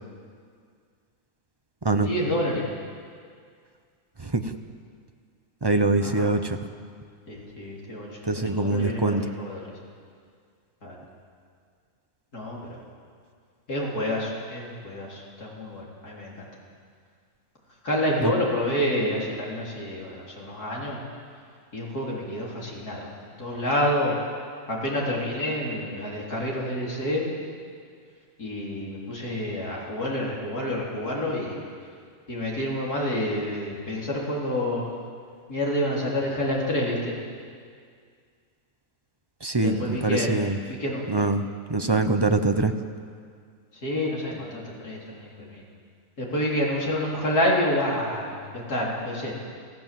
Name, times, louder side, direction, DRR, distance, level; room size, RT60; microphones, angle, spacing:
voice 1, 2.0-2.7 6.0-6.3 7.3-8.2 8.5-9.6 10.8-11.0 12.3-12.8 13.7-16.5 17.8-21.0 21.7-24.1 24.7-27.3 28.4-31.6 32.3-35.0 35.5-37.1 39.6-40.3 40.7-41.0 41.8-42.0 43.7-45.6 46.2-49.3, left 1 dB, 85° left, -4 dB, 4.3 m, -28 dB
voice 2, 4.2-4.5 5.6-6.6 8.2-9.3 18.2-18.3 39.4-40.6 41.1-42.7, right 3 dB, 20° right, 7 dB, 0.8 m, -24 dB
26.5 x 16.0 x 7.7 m, 2.1 s
omnidirectional pair, 1.6 m